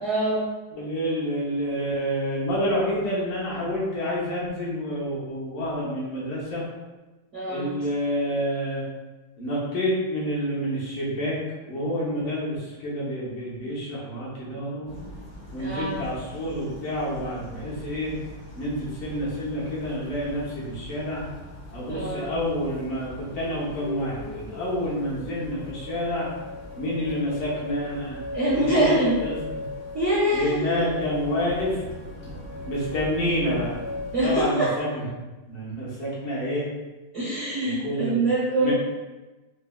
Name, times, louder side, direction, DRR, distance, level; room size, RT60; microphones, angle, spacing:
voice 1, 0.0-0.5 7.3-7.7 15.6-16.0 21.9-22.3 28.3-29.2 29.9-30.8 34.1-34.7 37.1-38.7, right 1 dB, 65° right, -7 dB, 0.7 m, -24 dB
voice 2, 0.7-6.6 7.5-8.8 9.4-11.4 11.7-14.9 15.5-18.1 18.6-21.2 21.7-26.3 26.8-28.2 28.5-29.6 30.3-31.8 32.7-33.8 34.2-35.0 35.5-36.7 37.6-38.2 38.6-38.7, equal, 80° left, -7 dB, 2.0 m, -28 dB
sound 1, 14.9-34.4, left 2 dB, 60° left, 0.9 m, -39 dB
4.6 x 2.7 x 2.3 m, 1.2 s
omnidirectional pair, 2.3 m